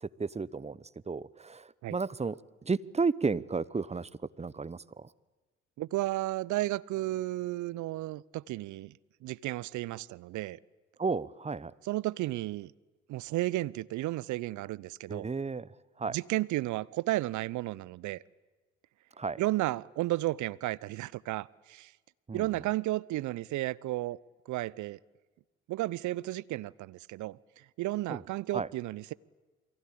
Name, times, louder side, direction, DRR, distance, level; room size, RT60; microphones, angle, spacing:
voice 1, 0.0-4.1 4.4-5.1 11.0-11.7 15.1-16.2 19.2-19.4 22.3-22.6 28.1-28.2 28.5-28.7, right 4 dB, 20° right, 1.0 m, -33 dB
voice 2, 5.8-10.6 11.9-12.7 13.1-15.3 16.1-18.2 19.4-21.9 22.3-24.2 24.5-25.0 25.7-27.4 27.8-29.1, right 17 dB, 60° right, 0.8 m, -33 dB
28.5 x 23.0 x 8.8 m
hypercardioid pair, 50°, 34 cm